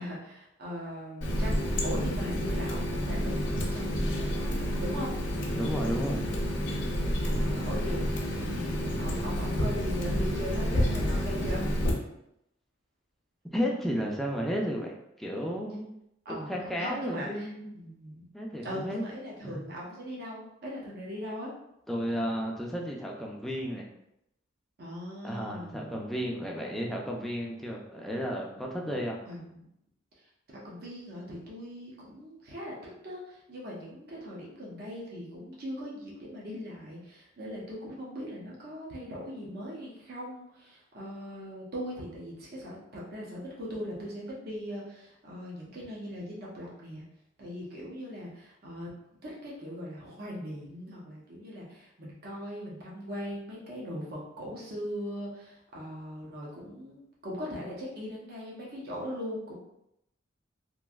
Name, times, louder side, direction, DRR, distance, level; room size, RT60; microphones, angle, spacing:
voice 1, 0.0-1.5 1.8-5.1 7.2-11.7 16.3-17.5 17.7-18.3 18.6-21.5 24.8-25.9 29.3-29.6 30.6-32.8 33.0-47.0 47.4-48.9 49.2-59.6, equal, 55° right, -4 dB, 0.7 m, -39 dB
Water tap faucet, 1.2-11.9, equal, 70° left, 0.6 m, -29 dB
voice 2, 5.5-6.2 13.5-15.8 16.3-17.7 18.3-19.0 19.4-19.6 21.9-23.9 25.2-29.2, equal, ahead, -2 dB, 0.4 m, -33 dB
3.1 x 2.5 x 2.3 m, 0.80 s
head